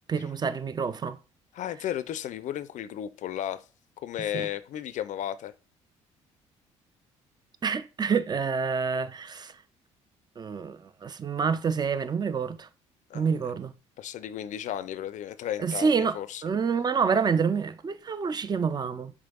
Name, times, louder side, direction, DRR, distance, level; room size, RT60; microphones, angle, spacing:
voice 1, 0.1-1.2 4.3-4.5 7.6-9.5 10.4-12.7 13.1-13.7 15.6-16.2 16.4-19.1, right 5 dB, 30° right, 0.4 m, -27 dB
voice 2, 1.5-3.6 4.0-5.5 13.1-13.5 14.0-16.4, left 11 dB, 55° left, 0.4 m, -34 dB
5.0 x 3.4 x 2.2 m
hypercardioid pair, 55°, 15 cm